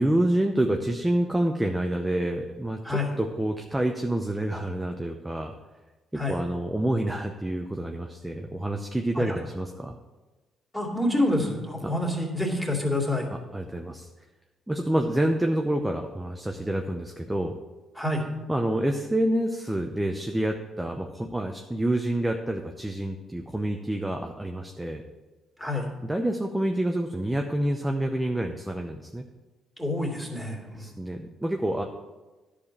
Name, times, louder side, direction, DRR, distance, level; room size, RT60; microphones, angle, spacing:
voice 1, 0.0-5.5 6.1-9.9 11.8-11.9 13.5-14.1 14.7-17.6 18.5-25.0 26.0-29.2 30.7-31.8, right 1 dB, 10° right, 3 dB, 0.7 m, -28 dB
voice 2, 10.7-13.3 18.0-18.2 25.6-25.9 29.8-30.9, left 1 dB, 5° left, -1 dB, 2.5 m, -27 dB
10.5 x 5.0 x 7.2 m, 1.2 s
cardioid pair, 90°, 0 cm